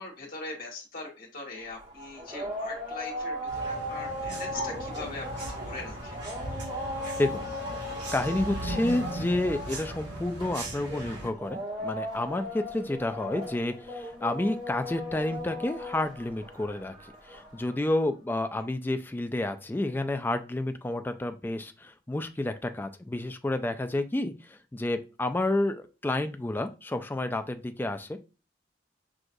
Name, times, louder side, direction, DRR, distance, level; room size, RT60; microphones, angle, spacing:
voice 1, 0.0-6.2 18.6-18.7, left 3 dB, 50° left, -2 dB, 1.5 m, -41 dB
sound 1, 1.6-17.9, left 1 dB, 25° right, 1.2 m, -38 dB
sound 2, 3.5-11.3, right 1 dB, 65° right, 1.7 m, -38 dB
voice 2, 8.1-28.2, left 1 dB, 10° left, 7 dB, 0.3 m, -30 dB
6.1 x 2.5 x 2.6 m, 0.32 s
head